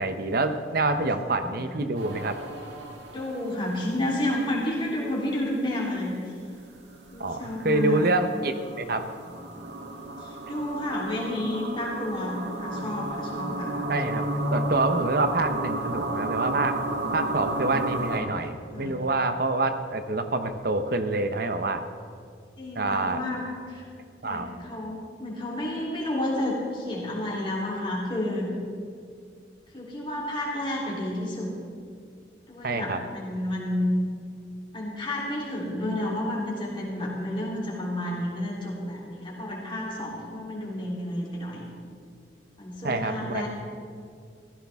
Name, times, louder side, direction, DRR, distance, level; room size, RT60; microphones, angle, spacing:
voice 1, 0.0-2.4 7.2-7.4 7.6-9.0 13.9-14.2 14.5-16.8 17.1-21.8 22.8-23.2 24.2-24.5 32.6-33.0 42.8-43.5, right 2 dB, 60° right, 9 dB, 0.9 m, -26 dB
voice 2, 1.4-1.7 3.1-6.2 7.1-8.1 10.2-13.7 18.7-18.9 22.6-23.8 24.2-28.5 29.7-31.5 32.5-33.9 34.7-41.7 42.6-43.5, left 1 dB, 30° left, -5 dB, 3.3 m, -31 dB
sound 1, 1.9-4.1 6.5-18.2, right 1 dB, 90° right, 1.7 m, -33 dB
15.5 x 15.0 x 3.6 m, 2.3 s
head